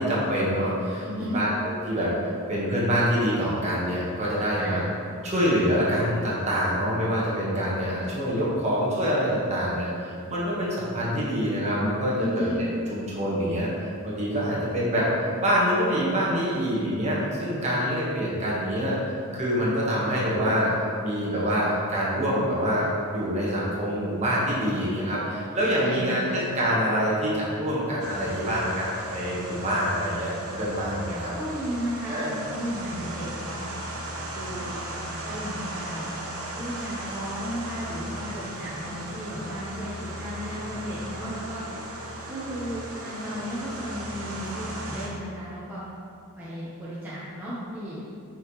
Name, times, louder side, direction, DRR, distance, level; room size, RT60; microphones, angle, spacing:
voice 1, 0.0-1.0 1.3-4.8 5.2-12.5 12.9-19.0 19.3-20.7 21.0-31.3 32.1-32.4, equal, 30° right, -6 dB, 1.4 m, -26 dB
voice 2, 1.0-1.4 4.5-4.8 12.2-12.6 25.8-26.4 31.3-33.7 34.3-34.8 35.2-36.0 36.6-39.9 40.2-41.6 42.3-45.8 46.4-48.0, equal, 10° right, -11 dB, 1.0 m, -34 dB
sound 1, 28.0-45.1, right 1 dB, 70° right, 1.1 m, -36 dB
6.9 x 5.5 x 3.1 m, 2.6 s
head